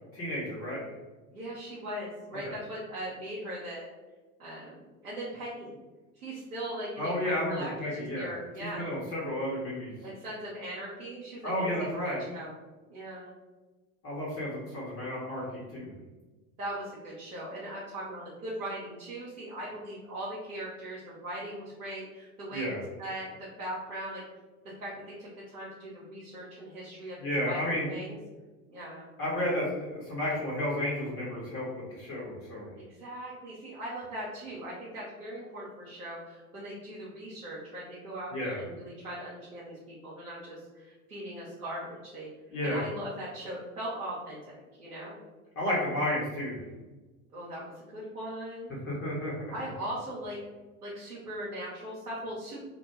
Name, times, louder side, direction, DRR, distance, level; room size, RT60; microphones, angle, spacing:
voice 1, 0.1-0.9 7.0-8.3 8.6-9.9 11.4-12.2 14.0-15.9 22.5-22.8 27.2-27.9 29.2-31.7 31.9-32.7 38.3-38.6 42.5-42.8 45.6-46.6 48.9-49.3, left 1 dB, 30° left, -6 dB, 0.9 m, -32 dB
voice 2, 1.3-3.9 4.4-5.7 6.2-8.9 10.0-12.5 12.9-13.3 16.6-24.2 24.8-27.6 27.9-28.2 28.7-29.1 32.8-42.3 42.6-45.2 47.3-48.7 49.5-50.4 50.8-52.6, right 1 dB, 90° right, -8 dB, 0.8 m, -39 dB
2.3 x 2.1 x 3.0 m, 1.2 s
figure-of-eight pair, 80°, 44 cm